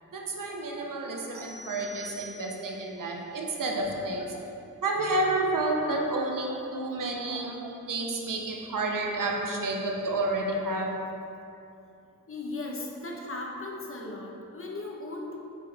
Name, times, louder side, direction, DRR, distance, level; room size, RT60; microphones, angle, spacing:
voice 1, 0.1-4.5 4.8-10.9, right 2 dB, 80° right, 1 dB, 0.9 m, -30 dB
sound 1, 1.3-2.9, right 1 dB, 45° right, 1.6 m, -45 dB
voice 2, 12.3-15.4, left 2 dB, 40° left, -1 dB, 1.1 m, -37 dB
8.5 x 5.2 x 3.5 m, 2.7 s
wide cardioid pair, 105°, 32 cm